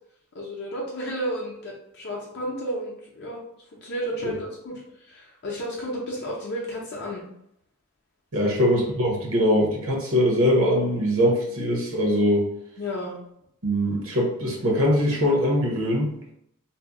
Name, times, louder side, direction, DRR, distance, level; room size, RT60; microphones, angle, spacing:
voice 1, 0.3-3.4 3.8-7.2 8.4-8.5 12.8-13.2, equal, 50° left, -4 dB, 0.5 m, -32 dB
voice 2, 8.3-12.5 13.6-16.1, equal, 65° right, -2 dB, 0.8 m, -22 dB
2.7 x 2.0 x 3.5 m, 0.74 s
head